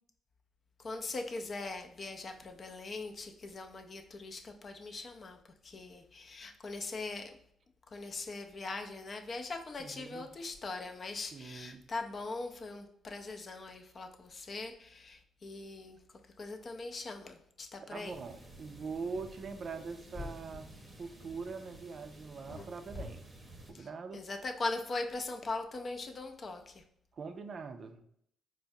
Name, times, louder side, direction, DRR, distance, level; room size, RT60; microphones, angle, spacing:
voice 1, 0.8-5.4 5.6-7.3 7.9-16.0 16.4-18.1 23.7-23.9 24.1-26.7, left 3 dB, 40° left, 5 dB, 0.5 m, -41 dB
voice 2, 9.8-10.3 11.3-11.8 17.8-20.7 21.0-23.3 23.7-24.2 27.1-28.0, right 4 dB, 50° right, 7 dB, 0.4 m, -43 dB
sound 1, 18.0-23.7, right 2 dB, 20° right, 0.7 m, -52 dB
sound 2, 19.7-19.8 20.1-20.4 22.5-22.6 22.9-23.1, left 3 dB, 25° left, 0.8 m, -42 dB
4.5 x 2.1 x 2.6 m, 0.68 s
cardioid pair, 90°, 0 cm